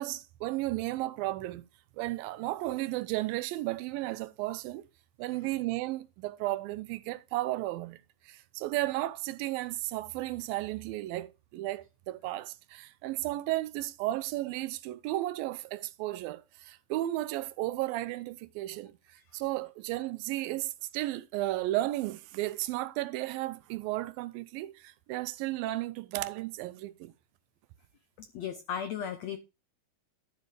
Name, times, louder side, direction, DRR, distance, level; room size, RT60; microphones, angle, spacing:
voice 1, 0.0-1.6 2.0-4.8 5.2-18.9 19.3-27.1, right 17 dB, 85° right, 2.3 m, -34 dB
voice 2, 28.2-29.4, left 8 dB, 80° left, 1.5 m, -36 dB
12.5 x 6.8 x 3.2 m
omnidirectional pair, 4.1 m